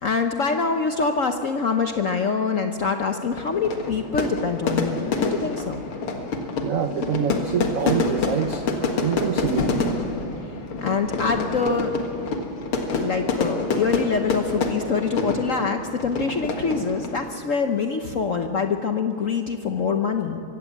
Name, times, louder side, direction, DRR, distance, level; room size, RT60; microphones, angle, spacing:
voice 1, 0.0-5.8 10.8-11.9 12.9-20.4, left 5 dB, 55° left, 5 dB, 0.9 m, -25 dB
Fire / Fireworks, 3.3-17.3, left 3 dB, 85° left, 2.6 m, -27 dB
voice 2, 6.6-8.7 9.0-9.8, right 8 dB, 85° right, 9 dB, 0.7 m, -26 dB
24.0 x 16.5 x 7.4 m, 2.4 s
omnidirectional pair, 2.3 m